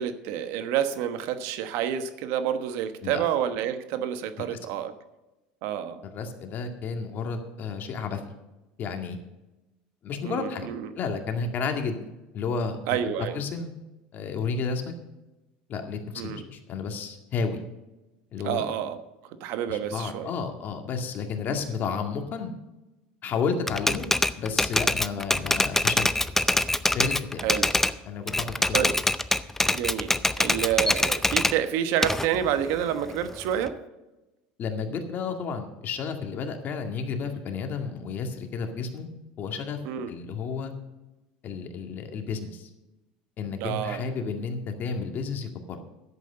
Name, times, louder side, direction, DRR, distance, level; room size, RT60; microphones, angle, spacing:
voice 1, 0.0-4.9 5.6-6.0 10.2-10.9 12.9-13.4 16.1-16.4 18.4-19.0 19.4-20.3 27.4-27.7 28.7-29.0 29.7-33.8 39.8-40.1 43.6-44.0, right 10 dB, 70° right, 10 dB, 1.1 m, -28 dB
voice 2, 6.0-8.2 8.8-9.2 10.0-10.7 11.0-12.0 12.3-13.0 13.3-13.7 14.1-14.9 15.7-17.6 18.3-18.6 19.7-22.5 23.2-24.1 24.4-26.1 26.9-27.4 28.0-28.8 34.6-39.1 39.4-39.8 40.1-40.7 41.4-42.7 43.4-45.8, left 5 dB, 45° left, 5 dB, 2.0 m, -31 dB
Typewriter, 23.7-28.0 28.3-31.6 32.0-33.7, left 2 dB, 10° left, 0.5 m, -24 dB
11.0 x 8.3 x 6.7 m, 1.0 s
supercardioid pair, 100°, 4 cm